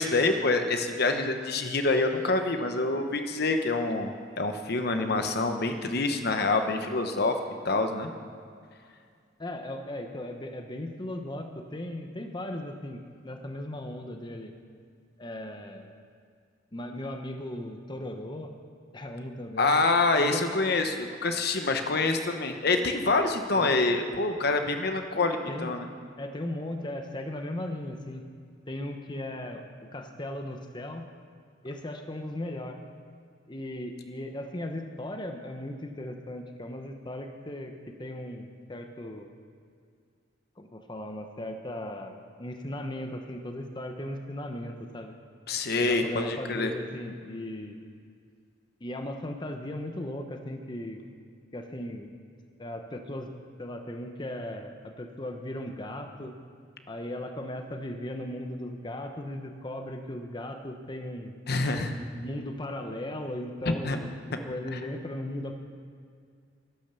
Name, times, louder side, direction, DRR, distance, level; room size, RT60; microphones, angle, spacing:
voice 1, 0.0-7.3 7.6-8.1 19.6-25.9 45.5-46.7 61.5-61.9 63.7-64.0, left 3 dB, 55° left, 6 dB, 1.0 m, -26 dB
voice 2, 9.4-14.5 15.2-15.9 16.7-18.5 18.9-19.8 20.2-20.5 23.5-23.7 25.5-25.7 26.2-28.2 28.7-29.6 29.9-31.1 31.6-32.8 33.5-39.3 40.6-45.1 45.8-47.8 48.8-51.0 51.5-52.1 52.6-53.3 53.6-56.3 56.9-61.3 62.1-65.6, left 1 dB, 25° left, 4 dB, 0.9 m, -37 dB
12.5 x 11.5 x 6.9 m, 2.2 s
head